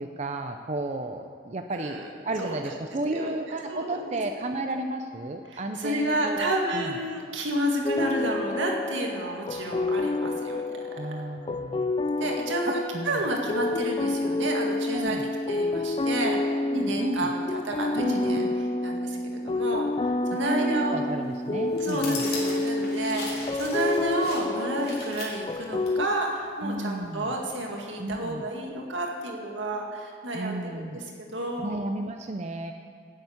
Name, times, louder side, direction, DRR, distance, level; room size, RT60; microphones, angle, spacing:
voice 1, 0.0-7.0 11.0-11.9 12.7-13.2 14.9-15.2 16.7-17.3 17.9-18.5 20.3-22.3 26.6-27.3 28.0-28.5 30.3-31.0 31.6-32.7, right 2 dB, 35° right, 5 dB, 0.5 m, -33 dB
voice 2, 1.7-2.1 2.4-2.8 3.1-4.2 4.7-4.9 5.5-10.7 12.2-15.2 15.5-18.5 18.8-21.1 21.8-30.8 31.3-31.8, right 1 dB, 85° right, 0 dB, 2.1 m, -31 dB
sound 1, 7.8-26.1, left 2 dB, 25° left, 0.3 m, -29 dB
sound 2, 21.7-25.9 26.2-26.3, left 3 dB, 55° left, 2.9 m, -38 dB
11.5 x 7.9 x 8.7 m, 2.1 s
head